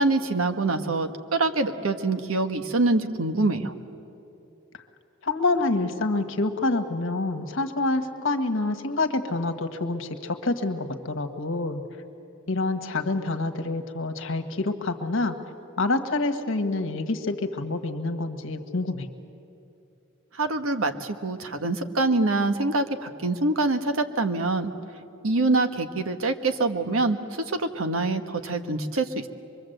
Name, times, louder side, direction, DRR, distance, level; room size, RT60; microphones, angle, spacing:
voice 1, 0.0-3.7 20.4-24.7 25.2-29.3, right 2 dB, 80° right, 7 dB, 1.4 m, -25 dB
voice 2, 5.2-11.8 12.5-15.3 15.8-19.1, left 2 dB, 65° left, 6 dB, 1.5 m, -27 dB
24.5 x 23.0 x 8.0 m, 2.7 s
head